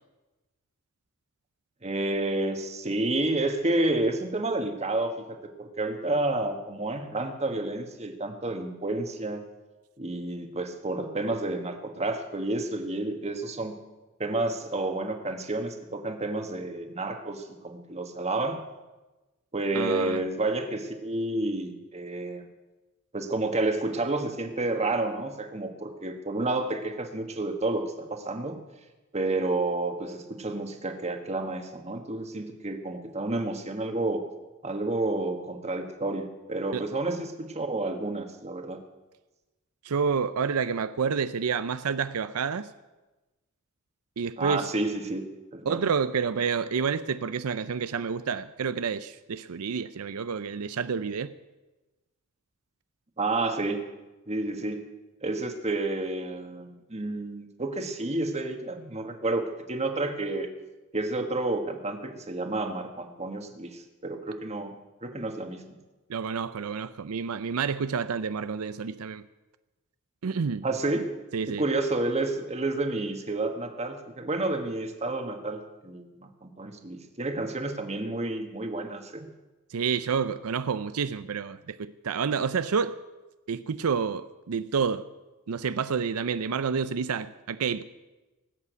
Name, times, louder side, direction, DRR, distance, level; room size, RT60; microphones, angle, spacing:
voice 1, 1.8-9.4 10.0-13.7 14.2-18.6 19.5-22.4 23.1-28.6 29.1-34.2 34.6-38.8 44.4-45.2 45.5-45.8 53.2-53.8 54.3-54.8 55.2-60.5 60.9-64.7 65.0-65.6 70.6-71.0 71.5-79.3, right 2 dB, 30° right, 1.5 m, -30 dB
voice 2, 19.7-20.2 36.7-36.8 39.8-42.7 44.2-44.7 45.7-51.3 66.1-69.2 70.2-70.6 71.3-71.6 79.7-82.9 83.5-85.0 85.5-87.8, right 6 dB, 85° right, 0.5 m, -29 dB
18.5 x 8.3 x 8.1 m
head